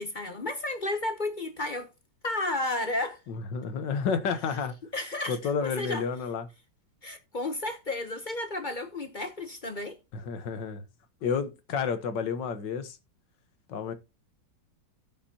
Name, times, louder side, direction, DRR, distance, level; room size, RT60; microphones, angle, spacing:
voice 1, 0.0-1.9 2.2-3.2 4.9-6.0 7.0-10.0, left 2 dB, 35° left, 0.8 m, -32 dB
voice 2, 3.3-4.7 5.3-6.5 10.1-10.8 11.2-13.0 13.7-13.9, left 6 dB, 80° left, 1.8 m, -30 dB
16.0 x 5.9 x 2.9 m
omnidirectional pair, 1.9 m